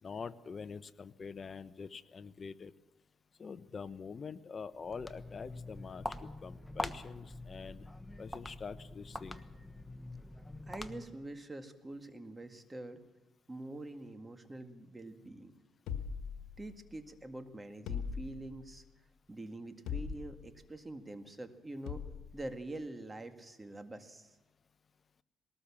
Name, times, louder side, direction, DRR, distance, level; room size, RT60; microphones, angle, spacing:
voice 1, 0.0-2.7 3.4-7.9 8.2-9.4, left 5 dB, 40° left, 13 dB, 0.9 m, -45 dB
Walk footsteps, 4.7-11.3, left 1 dB, 10° left, 1.2 m, -44 dB
voice 2, 10.7-13.0 13.5-15.5 16.6-18.8 19.3-22.1 22.3-24.4, right 2 dB, 20° right, 7 dB, 2.0 m, -45 dB
sound 1, 15.9-17.0 17.9-18.8 19.9-20.6 21.9-22.3, left 7 dB, 90° left, 1.5 m, -40 dB
20.5 x 18.5 x 7.3 m, 1.1 s
cardioid pair, 90°, 0 cm